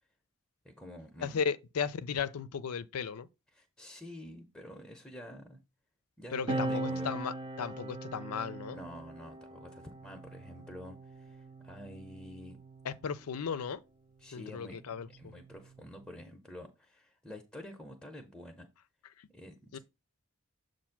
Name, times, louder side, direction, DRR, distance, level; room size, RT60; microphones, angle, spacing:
voice 1, 0.6-1.4 3.5-5.6 6.2-7.2 8.7-12.6 14.2-14.8 15.2-18.7 19.3-19.8, left 1 dB, 5° left, 0.7 m, -48 dB
voice 2, 1.2-3.3 6.3-8.8 12.8-13.8 14.3-15.3 19.7-19.8, left 6 dB, 90° left, 0.5 m, -35 dB
sound 1, 6.5-13.4 14.4-16.2, right 2 dB, 25° right, 0.4 m, -41 dB
7.1 x 2.6 x 5.8 m
head